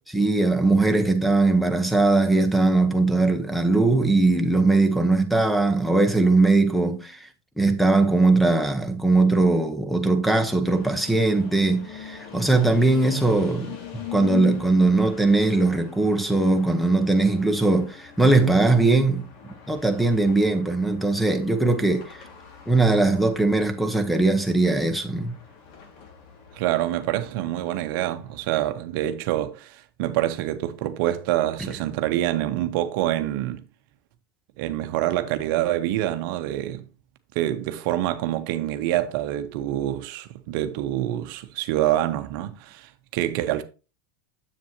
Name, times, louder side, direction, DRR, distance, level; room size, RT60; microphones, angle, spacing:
voice 1, 0.1-7.3 7.6-19.3 19.7-22.2 22.7-25.4, right 2 dB, ahead, 1.0 m, -20 dB
sound 1, 10.6-28.5, left 9 dB, 60° left, 2.2 m, -42 dB
voice 2, 26.5-33.6 34.6-36.8 37.3-43.6, right 13 dB, 65° right, 0.7 m, -26 dB
7.5 x 7.3 x 2.9 m
hypercardioid pair, 110°, 12 cm